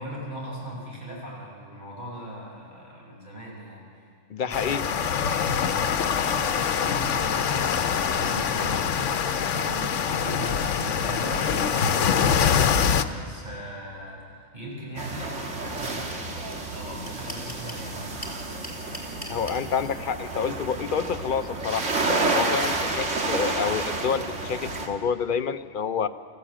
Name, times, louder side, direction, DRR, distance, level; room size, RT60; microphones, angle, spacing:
voice 1, 0.0-3.8 4.5-4.9 5.4-12.4 13.0-18.4, right 1 dB, 40° right, -4 dB, 6.4 m, -39 dB
voice 2, 4.3-4.8 19.3-21.9 22.3-26.1, left 6 dB, 50° left, 11 dB, 0.7 m, -28 dB
sound 1, 4.5-13.0, left 7 dB, 90° left, 1.1 m, -24 dB
sound 2, 15.0-24.9, right 2 dB, 85° right, 2.1 m, -30 dB
sound 3, 16.1-16.2 16.5-16.6 16.8-17.8 18.2-19.6, left 1 dB, 15° left, 3.4 m, -38 dB
20.0 x 15.0 x 8.7 m, 2.4 s
omnidirectional pair, 1.2 m